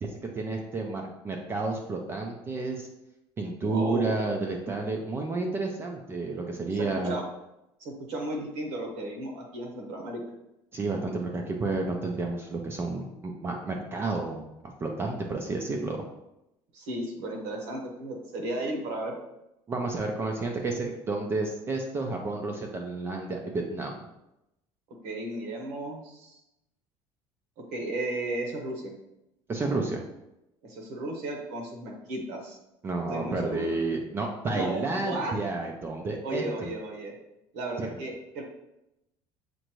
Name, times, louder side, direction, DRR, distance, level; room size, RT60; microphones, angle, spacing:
voice 1, 0.0-2.9 3.4-7.2 10.7-16.1 19.7-24.1 29.5-30.0 32.8-36.7 37.8-38.0, right 3 dB, 20° right, 2 dB, 0.4 m, -31 dB
voice 2, 3.6-4.2 6.7-7.2 7.8-10.2 16.7-19.2 25.0-26.4 27.7-28.9 30.6-32.6 33.1-33.7 34.5-35.3 36.2-37.1 37.5-38.4, right 1 dB, 80° right, 2 dB, 1.1 m, -34 dB
6.3 x 2.5 x 3.0 m, 0.88 s
cardioid pair, 160°, 11 cm